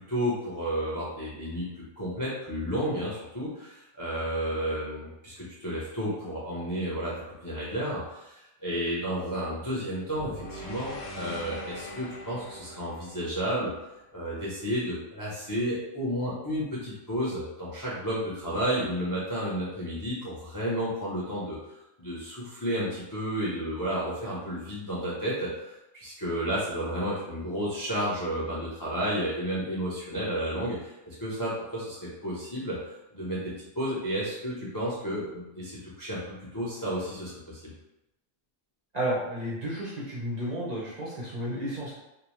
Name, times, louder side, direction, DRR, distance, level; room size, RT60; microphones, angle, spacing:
voice 1, 0.1-1.7 2.0-13.7 14.1-21.6 22.0-32.8 33.1-37.6, equal, 35° left, -7 dB, 0.3 m, -32 dB
sound 1, 10.1-14.4, left 1 dB, 65° left, 0.8 m, -42 dB
voice 2, 38.9-41.9, right 1 dB, 50° right, -6 dB, 0.5 m, -32 dB
2.7 x 2.0 x 2.9 m, 0.92 s
omnidirectional pair, 1.4 m